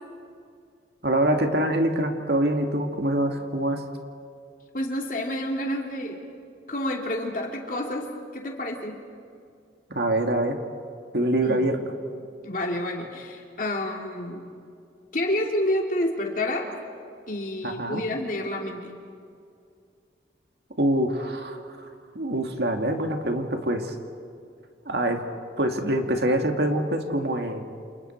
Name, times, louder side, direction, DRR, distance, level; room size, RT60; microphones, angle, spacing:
voice 1, 1.0-3.8 9.9-10.6 11.1-11.8 17.6-18.0 20.8-21.9 22.1-23.9 24.9-25.2 25.6-27.7, right 1 dB, 65° right, 4 dB, 2.1 m, -25 dB
voice 2, 4.7-6.2 6.7-8.1 8.3-9.0 11.4-11.6 12.4-14.5 15.1-16.7 17.3-18.9, left 1 dB, 50° left, 1 dB, 3.1 m, -29 dB
29.0 x 28.0 x 4.5 m, 2.4 s
head